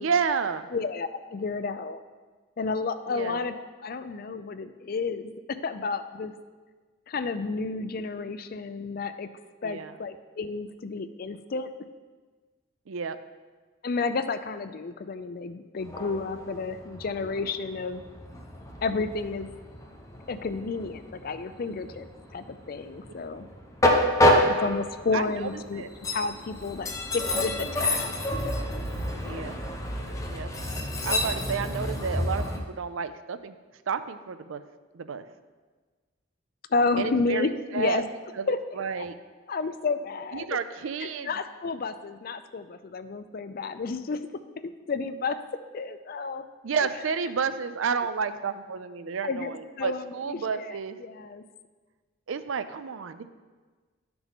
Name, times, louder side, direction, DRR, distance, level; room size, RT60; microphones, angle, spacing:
voice 1, 0.0-0.7 3.1-3.4 9.6-9.9 12.9-13.2 23.3-23.4 24.1-24.3 25.1-25.9 29.2-29.5 30.2-30.5 31.0-33.6 33.9-34.6 34.9-35.2 37.0-38.0 38.4-39.2 40.3-41.4 46.6-51.0 52.3-53.2, right 6 dB, 90° right, 12 dB, 0.5 m, -31 dB
voice 2, 0.7-2.0 2.6-3.5 3.8-6.3 7.1-9.3 9.6-11.7 13.8-18.0 18.8-19.5 20.3-22.1 22.3-23.5 24.6-28.1 36.7-38.1 38.5-38.6 38.9-39.1 39.5-40.5 41.0-44.2 44.6-45.4 45.7-46.4 49.2-51.4, left 4 dB, 50° left, 11 dB, 0.4 m, -31 dB
Train, 15.8-32.6, left 1 dB, 15° left, 0.9 m, -28 dB
12.0 x 6.0 x 3.6 m, 1.4 s
head